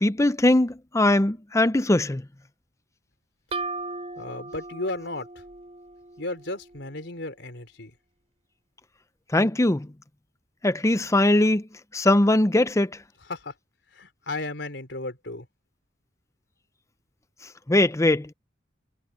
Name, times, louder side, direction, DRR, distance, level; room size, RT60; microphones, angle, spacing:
voice 1, 0.0-2.2 9.3-9.9 10.6-11.7 11.9-13.0 17.7-18.3, left 1 dB, 15° left, 0.7 m, -21 dB
sound 1, 3.5-7.1, right 3 dB, 35° right, 7.0 m, -37 dB
voice 2, 4.2-5.3 6.2-7.9 13.3-13.5 13.9-15.5, left 2 dB, 80° left, 3.8 m, -34 dB
head